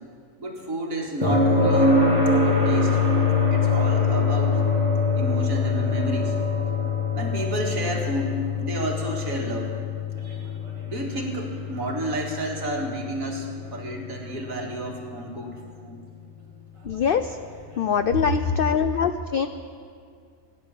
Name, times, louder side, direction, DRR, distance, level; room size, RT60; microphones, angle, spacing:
voice 1, 0.4-3.0 3.5-4.6 5.1-6.4 7.1-9.7 10.2-10.5 10.9-16.0 18.1-18.2 18.5-18.6, right 1 dB, 70° right, 0 dB, 2.4 m, -31 dB
sound 1, 1.2-15.1 17.3-17.4, left 3 dB, 20° right, 2.0 m, -24 dB
voice 2, 16.9-17.4 17.8-19.5, left 7 dB, 70° left, 10 dB, 0.5 m, -23 dB
15.5 x 10.0 x 7.3 m, 2.2 s
omnidirectional pair, 1.5 m